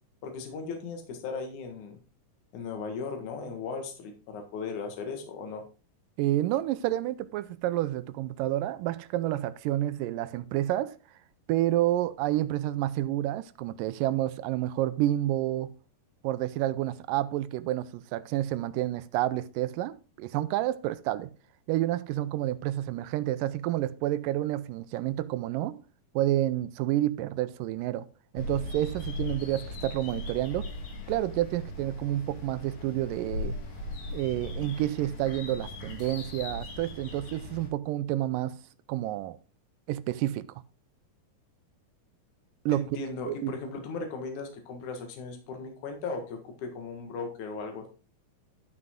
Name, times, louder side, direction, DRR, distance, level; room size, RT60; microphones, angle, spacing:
voice 1, 0.2-2.0 2.5-5.6 42.7-47.9, left 4 dB, 65° left, 2.9 m, -37 dB
voice 2, 6.2-11.0 11.5-15.7 16.2-21.3 21.7-25.8 26.2-28.1 28.3-30.7 31.1-33.6 34.1-38.6 38.9-39.4 39.9-40.5 42.7-42.9 43.3-43.5, right 14 dB, 80° right, 2.1 m, -29 dB
sound 1, 28.4-37.7, left 2 dB, 80° left, 3.6 m, -39 dB
12.0 x 6.0 x 3.6 m
omnidirectional pair, 4.0 m